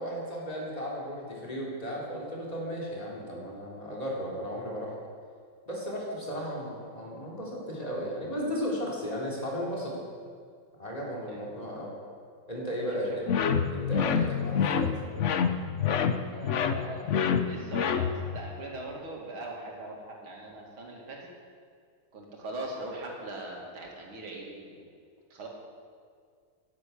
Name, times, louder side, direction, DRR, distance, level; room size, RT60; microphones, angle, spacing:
voice 1, 0.0-4.9 5.7-10.0 10.8-11.9 12.5-13.2 13.7-14.9, equal, 20° left, -4 dB, 3.5 m, -35 dB
voice 2, 12.8-13.2 16.3-17.1 17.4-21.3 22.1-24.9 25.3-25.5, right 2 dB, 85° right, -1 dB, 3.2 m, -41 dB
sound 1, 13.3-18.4, left 7 dB, 75° left, 0.6 m, -27 dB
11.0 x 10.5 x 8.5 m, 2.1 s
omnidirectional pair, 2.2 m